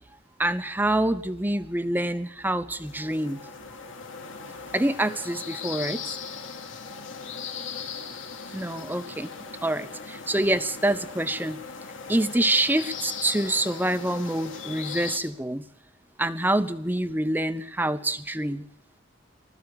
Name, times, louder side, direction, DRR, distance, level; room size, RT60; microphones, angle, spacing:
voice 1, 0.4-3.5 4.7-6.2 8.5-9.3 9.6-11.6 12.1-15.6 16.2-18.6, right 1 dB, 10° right, 11 dB, 0.9 m, -26 dB
sound 1, 2.7-15.2, left 5 dB, 90° left, 2.8 m, -39 dB
20.0 x 13.5 x 9.8 m, 0.71 s
head